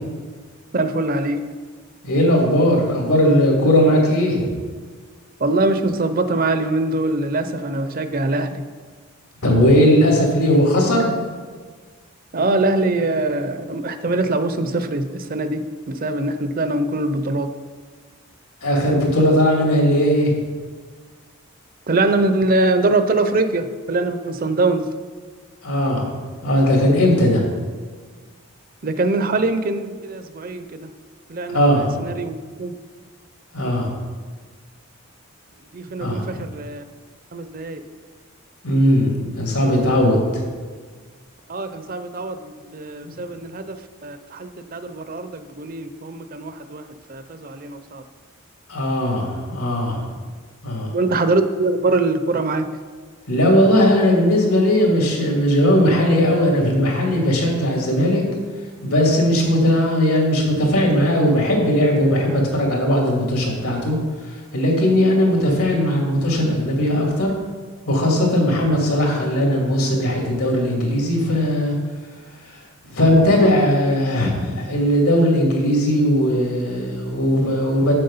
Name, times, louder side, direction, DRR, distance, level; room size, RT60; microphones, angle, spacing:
voice 1, 0.7-1.5 5.4-8.6 12.3-17.5 21.9-24.9 28.8-30.9 31.3-32.7 35.7-36.8 37.3-37.8 41.5-46.8 47.1-48.0 50.9-52.7, right 2 dB, 40° right, 10 dB, 0.5 m, -23 dB
voice 2, 2.0-4.5 9.4-11.1 18.6-20.3 25.6-26.1 26.4-27.4 31.5-31.9 33.5-33.9 36.0-36.4 38.6-40.4 48.7-50.0 50.6-50.9 53.3-58.2 58.8-64.0 64.3-67.3 67.9-71.7 72.9-77.9, equal, 80° left, -1 dB, 2.6 m, -18 dB
7.7 x 7.3 x 5.5 m, 1.5 s
head